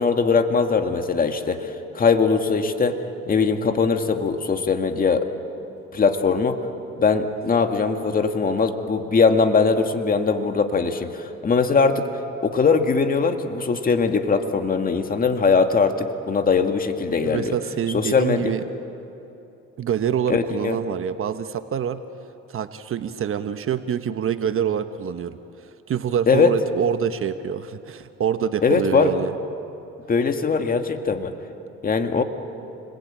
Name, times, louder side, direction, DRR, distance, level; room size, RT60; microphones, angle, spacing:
voice 1, 0.0-3.0 3.3-5.3 5.9-6.6 7.0-12.0 12.4-17.5 17.9-18.5 20.3-20.8 26.3-26.5 28.6-29.1 30.1-31.3 31.8-32.2, left 5 dB, 30° left, 6 dB, 2.0 m, -21 dB
voice 2, 17.2-18.6 19.8-22.0 22.5-29.3, right 8 dB, 50° right, 10 dB, 1.1 m, -26 dB
30.0 x 21.5 x 8.9 m, 2.9 s
cardioid pair, 100°, 29 cm